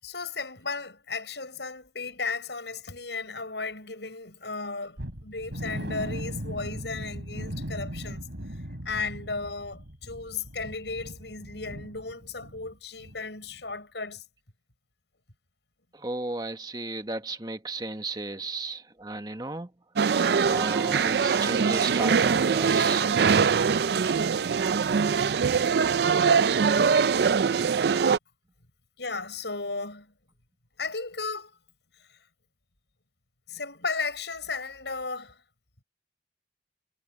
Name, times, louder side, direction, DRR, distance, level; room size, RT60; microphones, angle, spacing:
voice 1, 0.0-8.2 8.5-14.2 29.0-30.1 30.8-31.6 33.5-35.4, left 4 dB, 75° left, 6.6 m, -35 dB
sound 1, 5.0-12.7 13.0-13.2 13.6-13.7, equal, 90° right, 3.6 m, -38 dB
voice 2, 15.9-19.7 20.4-23.1, right 2 dB, 25° right, 1.4 m, -34 dB
sound 2, 20.0-28.2, right 6 dB, 60° right, 0.4 m, -23 dB
head